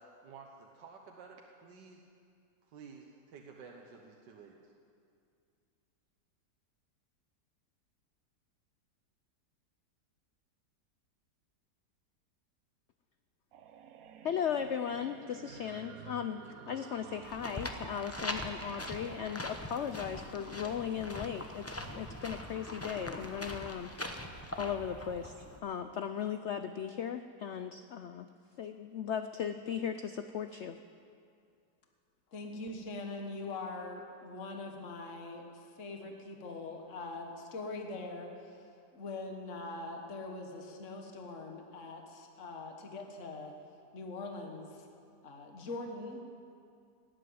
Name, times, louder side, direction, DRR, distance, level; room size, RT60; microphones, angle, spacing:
voice 1, 0.0-2.0 2.6-4.7, right 5 dB, 85° right, 1 dB, 1.7 m, -52 dB
sound 1, 13.5-19.5, right 8 dB, 65° right, 1.1 m, -52 dB
voice 2, 14.2-23.9 24.6-25.3 25.6-28.3 28.6-30.8, left 8 dB, 80° left, 9 dB, 0.6 m, -37 dB
sound 2, 17.2-25.6, left 1 dB, 15° left, 0.5 m, -42 dB
voice 3, 32.3-38.6 38.9-43.5 43.9-44.9 45.2-46.4, left 2 dB, 45° left, 2 dB, 1.8 m, -42 dB
18.0 x 8.7 x 9.3 m, 2.4 s
omnidirectional pair, 1.9 m